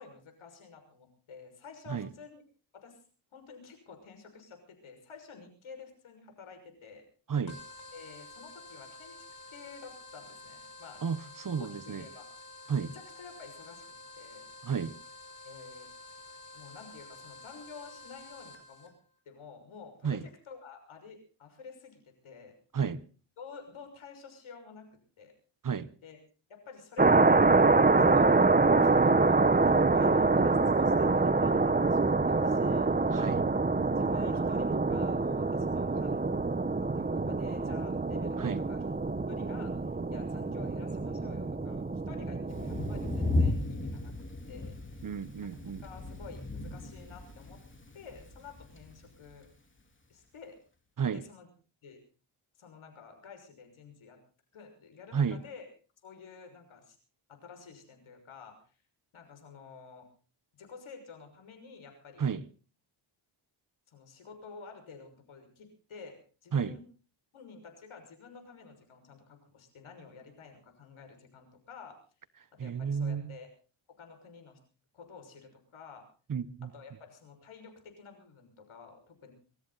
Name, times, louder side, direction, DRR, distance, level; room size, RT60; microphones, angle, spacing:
voice 1, 0.0-2.4 2.7-3.0 3.3-7.0 7.9-9.2 9.5-11.0 11.6-12.3 12.7-14.5 15.4-15.9 16.5-18.9 19.2-22.5 23.4-25.3 26.0-26.2 26.5-27.5 28.0-28.3 28.8-33.2 33.6-36.2 36.7-38.8 39.3-44.1 44.5-45.1 45.4-45.5 45.8-47.6 47.9-49.5 50.1-50.6 51.1-51.5 51.8-52.0 52.6-54.2 54.5-55.7 56.0-57.0 57.3-58.6 59.1-60.1 60.5-62.3 63.9-66.8 67.3-72.0 72.6-73.5 74.0-74.6 74.9-76.0 76.7-79.3, left 5 dB, 75° left, 6.3 m, -50 dB
sound 1, 7.5-18.9, left 2 dB, 55° left, 5.4 m, -50 dB
voice 2, 11.0-12.0 12.7-12.9 14.6-14.9 20.0-20.2 22.7-23.0 25.6-25.9 33.1-33.5 38.4-38.6 45.0-45.8 51.0-51.2 55.1-55.4 62.2-62.4 66.5-66.7 72.6-73.4 76.3-76.7, right 6 dB, 40° right, 1.0 m, -32 dB
sound 2, 27.0-43.5, right 3 dB, 20° right, 1.1 m, -26 dB
Thunder, 42.5-49.3, left 2 dB, 25° left, 3.5 m, -35 dB
24.0 x 14.0 x 4.1 m
cardioid pair, 80°, 49 cm